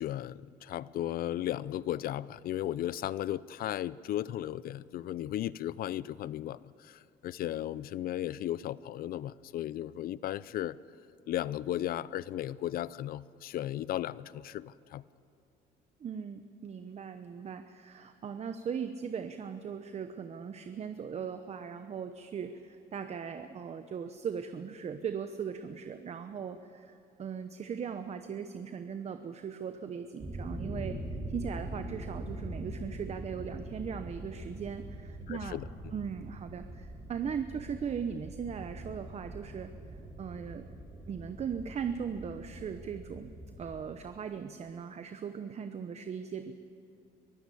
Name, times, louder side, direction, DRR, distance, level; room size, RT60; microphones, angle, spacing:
voice 1, 0.0-10.8 11.3-15.0 35.3-35.7, left 12 dB, 60° left, 19 dB, 0.5 m, -35 dB
voice 2, 16.0-31.0 31.3-35.6 35.9-39.7 40.2-40.7 41.1-43.3 43.6-46.5, right 7 dB, 40° right, 9 dB, 0.8 m, -39 dB
sound 1, 30.2-43.8, right 1 dB, 15° right, 4.9 m, -43 dB
23.0 x 14.5 x 8.4 m, 2.6 s
cardioid pair, 110°, 17 cm